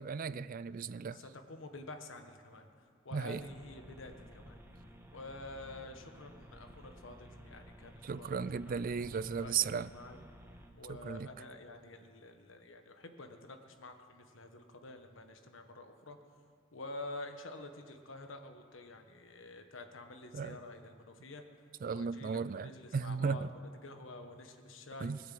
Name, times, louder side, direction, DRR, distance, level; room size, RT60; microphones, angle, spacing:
voice 1, 0.0-1.2 3.1-3.4 8.0-9.9 10.9-11.3 20.3-20.6 21.8-23.5 25.0-25.2, right 6 dB, 45° right, 17 dB, 0.4 m, -36 dB
voice 2, 1.1-2.7 3.0-4.5 5.1-8.8 9.1-10.2 10.8-16.2 16.7-21.4 21.9-25.1, left 2 dB, 75° left, 6 dB, 1.3 m, -49 dB
sound 1, 3.3-10.7, equal, 10° right, 1.3 m, -54 dB
21.0 x 8.0 x 7.6 m, 2.3 s
head